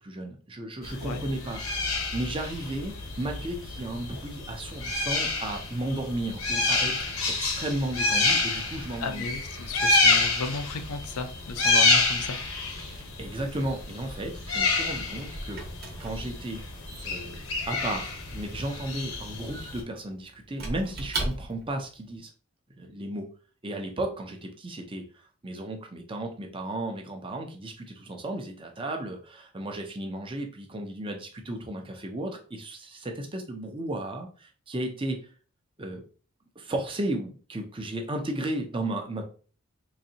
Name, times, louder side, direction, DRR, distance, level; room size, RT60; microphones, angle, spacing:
voice 1, 0.0-9.3 13.2-15.6 16.0-16.6 17.0-17.4 17.7-22.3 22.8-23.3 23.6-25.0 25.4-35.2 35.8-36.0 36.6-39.2, right 1 dB, 25° right, 4 dB, 0.5 m, -34 dB
sound 1, 0.8-19.8, left 3 dB, 65° left, 0.9 m, -28 dB
voice 2, 9.0-12.4, left 4 dB, 90° left, 7 dB, 0.6 m, -34 dB
Squeak / Wood, 14.6-21.8, right 2 dB, 45° right, 0.9 m, -38 dB
3.9 x 2.6 x 2.7 m, 0.39 s
head